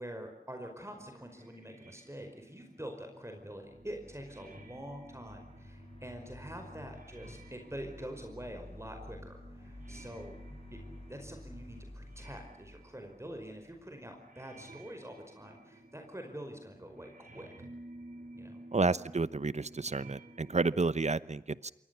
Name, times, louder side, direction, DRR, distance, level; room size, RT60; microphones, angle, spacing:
voice 1, 0.0-10.4 10.7-17.5 18.3-18.6, equal, 20° right, 4 dB, 5.1 m, -45 dB
sound 1, 0.8-20.7, right 2 dB, 70° right, 5.7 m, -54 dB
sound 2, 3.6-13.8, left 1 dB, 40° left, 7.2 m, -51 dB
voice 2, 18.7-21.7, right 3 dB, 50° right, 17 dB, 0.9 m, -31 dB
28.0 x 22.5 x 7.0 m, 0.82 s
wide cardioid pair, 55°, 15 cm